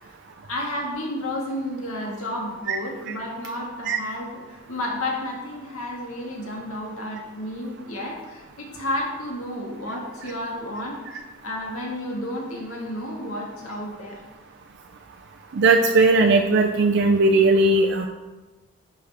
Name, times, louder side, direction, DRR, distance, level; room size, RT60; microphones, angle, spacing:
voice 1, 0.0-11.0 11.4-14.2, left 1 dB, 75° left, -1 dB, 1.8 m, -31 dB
voice 2, 15.5-18.1, right 3 dB, 55° right, 3 dB, 0.4 m, -18 dB
10.0 x 5.1 x 3.4 m, 1.2 s
head